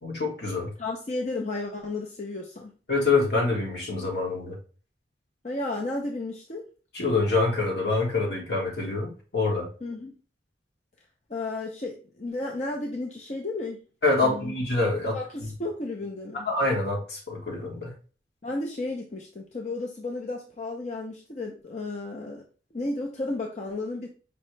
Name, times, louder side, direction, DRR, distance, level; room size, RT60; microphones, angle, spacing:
voice 1, 0.0-0.7 2.9-4.6 6.9-9.7 14.0-15.2 16.4-17.9, left 3 dB, 70° left, -1 dB, 1.5 m, -26 dB
voice 2, 0.8-2.7 5.4-6.6 9.8-10.1 11.3-13.8 14.2-14.5 15.1-16.5 18.4-22.4 22.7-24.1, left 2 dB, 40° left, 0 dB, 0.6 m, -33 dB
5.3 x 2.8 x 3.2 m, 0.37 s
head